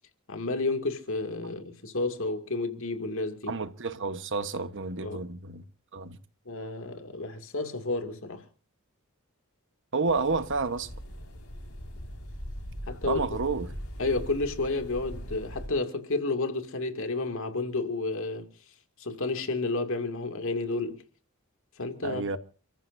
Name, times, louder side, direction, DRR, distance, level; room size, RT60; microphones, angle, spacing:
voice 1, 0.3-3.5 5.0-5.2 6.5-8.4 12.9-13.4 14.0-18.5 19.0-21.0 21.8-22.2, left 3 dB, 65° left, 2.6 m, -31 dB
voice 2, 3.5-5.6 5.9-6.2 9.9-10.9 13.0-13.7 22.0-22.4, right 4 dB, 60° right, 1.3 m, -30 dB
sound 1, 10.1-15.7, equal, 80° left, 5.3 m, -40 dB
30.0 x 14.5 x 2.7 m
head